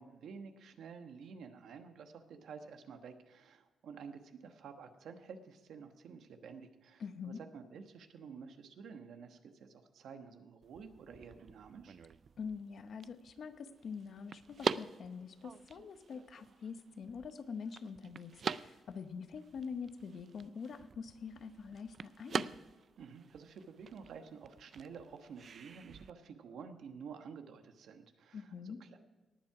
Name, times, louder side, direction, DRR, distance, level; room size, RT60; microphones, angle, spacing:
voice 1, 0.0-12.0 23.0-29.0, right 6 dB, 70° right, 7 dB, 1.2 m, -51 dB
voice 2, 7.0-7.4 12.4-22.5 28.3-28.8, left 5 dB, 50° left, 10 dB, 0.8 m, -45 dB
sound 1, 10.6-26.1, right 6 dB, 40° right, 0.3 m, -45 dB
19.0 x 7.5 x 4.8 m, 1.2 s
wide cardioid pair, 160°, 0 cm